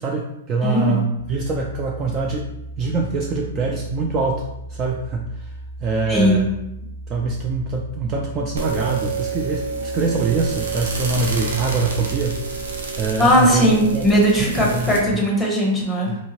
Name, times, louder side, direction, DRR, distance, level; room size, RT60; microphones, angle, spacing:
voice 1, 0.0-2.5 2.8-5.5 5.8-6.5 7.1-14.1 14.6-15.0 16.1-16.2, right 3 dB, 30° right, 0 dB, 0.3 m, -24 dB
voice 2, 0.6-1.0 6.0-6.5 13.2-16.2, equal, 5° left, -3 dB, 1.0 m, -18 dB
sound 1, 1.1-12.3, right 1 dB, 65° right, 1.2 m, -36 dB
sound 2, 8.6-15.0, right 4 dB, 85° right, 0.8 m, -29 dB
3.0 x 2.7 x 2.9 m, 0.87 s
hypercardioid pair, 130°, 0 cm